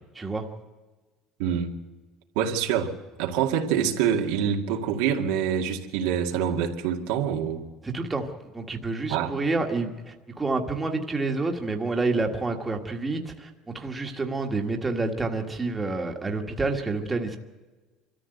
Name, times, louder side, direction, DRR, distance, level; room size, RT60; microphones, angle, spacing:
voice 1, 0.1-0.4 7.8-8.2 8.5-17.4, right 3 dB, 10° right, 3 dB, 1.6 m, -28 dB
voice 2, 1.4-1.7 2.4-2.9 3.2-7.7 9.1-9.3, right 8 dB, 85° right, 2 dB, 2.2 m, -26 dB
25.0 x 14.0 x 8.0 m, 1.3 s
cardioid pair, 155°, 0 cm